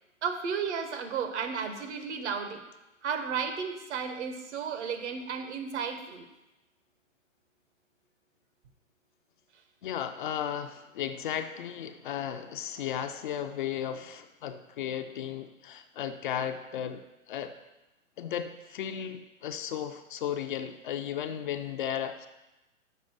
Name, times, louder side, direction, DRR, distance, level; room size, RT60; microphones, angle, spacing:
voice 1, 0.2-2.6 3.0-6.2, right 6 dB, 60° right, 6 dB, 1.2 m, -33 dB
voice 2, 9.8-17.5 18.2-22.3, left 9 dB, 40° left, 7 dB, 0.5 m, -35 dB
6.6 x 5.1 x 6.2 m, 0.99 s
hypercardioid pair, 125°, 39 cm